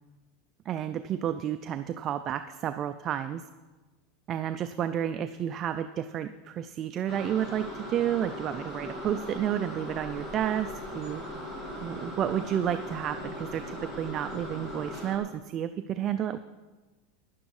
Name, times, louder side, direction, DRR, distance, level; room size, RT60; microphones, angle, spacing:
voice 1, 0.7-3.4 4.3-11.2 11.8-16.4, right 10 dB, 25° right, 9 dB, 0.3 m, -31 dB
sound 1, 7.1-15.2, equal, 20° left, 2.5 m, -39 dB
11.5 x 10.0 x 4.8 m, 1.2 s
supercardioid pair, 170°, 0 cm